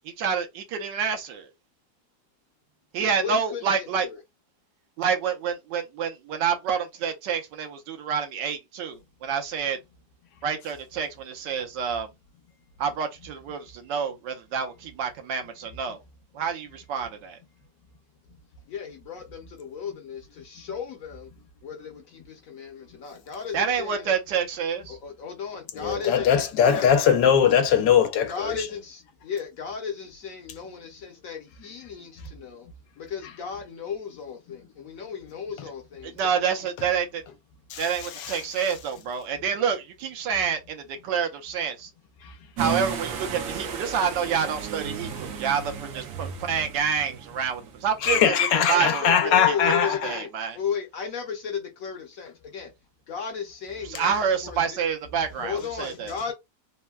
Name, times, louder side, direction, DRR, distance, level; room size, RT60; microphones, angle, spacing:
voice 1, 0.2-1.5 2.9-4.1 5.0-9.8 10.4-12.1 12.8-16.0 16.3-17.4 23.5-25.0 36.2-37.2 37.8-41.9 42.6-49.7 50.0-50.6 53.9-56.1, right 7 dB, 80° right, 1.3 m, -28 dB
voice 2, 3.0-4.2 18.7-21.3 21.6-24.2 24.9-26.9 28.3-32.7 33.0-36.4 48.5-52.7 53.1-54.1 54.4-54.8 55.4-56.3, left 6 dB, 60° left, 1.0 m, -35 dB
voice 3, 25.8-28.6 37.7-37.8 38.2-38.4 48.0-50.2, left 8 dB, 80° left, 1.2 m, -21 dB
sound 1, 42.6-48.0, right 7 dB, 65° right, 0.9 m, -34 dB
3.5 x 2.1 x 2.2 m
omnidirectional pair, 1.9 m